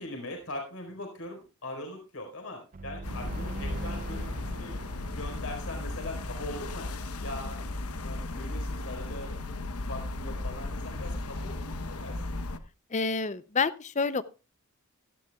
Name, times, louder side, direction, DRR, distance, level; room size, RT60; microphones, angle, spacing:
voice 1, 0.0-4.7 5.1-6.9 7.2-7.6 8.0-9.4 9.9-12.4, left 1 dB, 65° left, 3 dB, 4.4 m, -41 dB
sound 1, 2.7-6.5, right 3 dB, 35° right, 0.5 m, -43 dB
sound 2, 3.0-12.6, left 2 dB, 85° left, 1.0 m, -35 dB
voice 2, 12.9-14.2, left 4 dB, 30° left, 15 dB, 0.6 m, -28 dB
17.0 x 14.0 x 2.3 m, 0.31 s
head